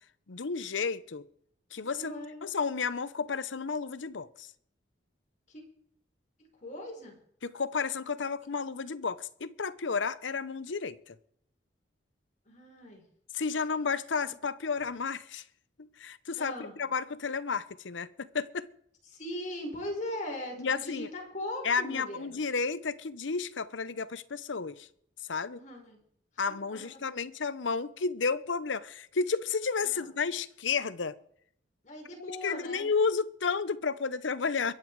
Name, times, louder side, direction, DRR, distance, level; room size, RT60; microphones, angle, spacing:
voice 1, 0.3-1.3 1.7-2.1 2.4-4.5 7.4-11.2 13.3-15.4 15.8-18.7 20.6-21.1 21.6-24.9 25.3-25.6 26.4-31.2 32.4-34.7, left 5 dB, 80° left, 0.8 m, -32 dB
voice 2, 1.8-2.5 5.5-5.6 6.4-7.1 12.5-13.0 16.4-16.7 19.1-22.3 25.5-26.0 26.5-27.2 29.8-30.1 31.8-32.9, left 1 dB, 40° left, 4.6 m, -40 dB
22.5 x 9.1 x 4.7 m
head